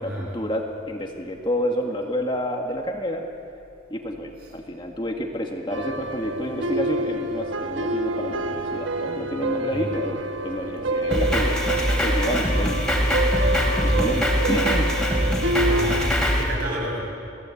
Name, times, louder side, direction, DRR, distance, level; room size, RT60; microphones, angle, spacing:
voice 1, 0.0-3.3 3.9-11.6 12.0-13.0 13.8-15.0, equal, 25° left, 1 dB, 1.8 m, -29 dB
sound 1, 5.7-16.1, right 1 dB, 80° right, 1.4 m, -27 dB
Drum kit, 11.1-16.4, equal, 5° left, 3.6 m, -23 dB
voice 2, 13.8-14.1 15.5-16.1 16.3-17.0, equal, 50° right, -2 dB, 7.4 m, -31 dB
29.0 x 18.0 x 8.5 m, 2.6 s
head